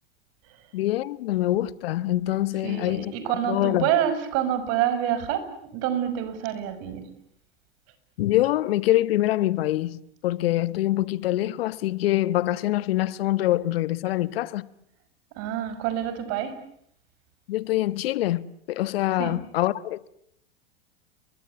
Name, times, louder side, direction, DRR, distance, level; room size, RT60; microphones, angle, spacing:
voice 1, 0.7-3.1 3.4-3.9 8.2-14.6 17.5-20.1, left 15 dB, 70° left, 1.3 m, -25 dB
voice 2, 2.6-7.1 15.4-16.6 19.2-19.4, right 10 dB, 50° right, 6.2 m, -27 dB
30.0 x 23.5 x 8.2 m
hypercardioid pair, 100°, 31 cm